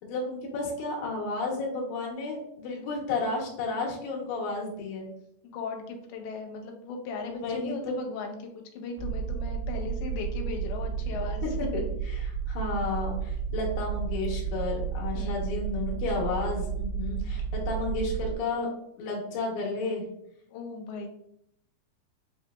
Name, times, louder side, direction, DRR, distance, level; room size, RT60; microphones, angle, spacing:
voice 1, 0.0-5.1 7.2-7.9 11.1-11.8 12.2-18.7 19.0-20.0, left 3 dB, 70° left, -2 dB, 2.0 m, -32 dB
voice 2, 5.4-11.4 15.1-15.5 20.5-21.1, left 4 dB, 90° left, 3 dB, 2.5 m, -37 dB
sound 1, 9.0-18.3, right 7 dB, 90° right, 2.5 m, -32 dB
5.5 x 2.8 x 2.3 m, 0.75 s
omnidirectional pair, 4.3 m